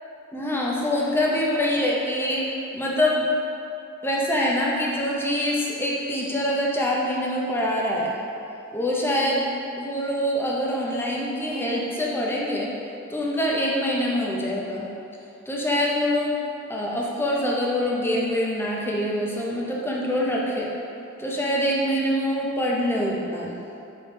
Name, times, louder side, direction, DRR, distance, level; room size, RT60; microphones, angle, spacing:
voice 1, 0.3-3.3 4.0-8.2 8.7-9.5 9.8-12.7 13.1-14.9 15.5-16.3 16.7-20.7 21.2-23.5, equal, 10° left, -3 dB, 0.5 m, -25 dB
4.6 x 3.1 x 3.2 m, 2.7 s
head